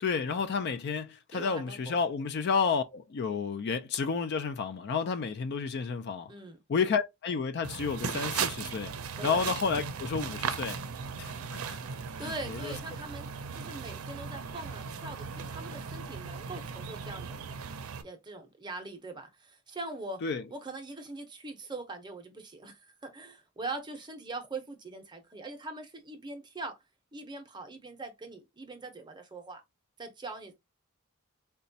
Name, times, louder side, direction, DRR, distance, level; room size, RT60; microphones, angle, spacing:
voice 1, 0.0-6.3 6.7-8.9 9.2-10.8 11.2-11.8 12.2-12.8 20.2-20.5, left 5 dB, 50° left, 0.3 m, -31 dB
voice 2, 1.3-2.0 6.3-6.6 9.2-9.4 12.2-13.3 13.6-17.4 18.0-20.2 20.5-26.8 27.1-29.6 30.0-30.5, right 2 dB, 20° right, 0.6 m, -42 dB
sound 1, 7.6-18.0, right 6 dB, 90° right, 0.5 m, -37 dB
4.0 x 2.2 x 2.6 m
head